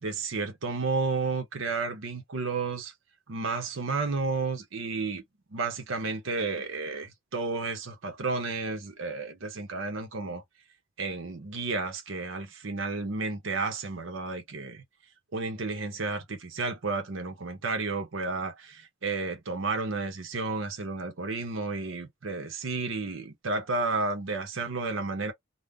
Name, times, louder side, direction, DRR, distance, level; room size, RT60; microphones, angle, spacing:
voice 1, 0.0-2.9 3.3-5.2 5.5-10.4 11.0-14.8 15.3-25.3, right 3 dB, 75° right, 0.8 m, -32 dB
2.4 x 2.0 x 3.5 m
head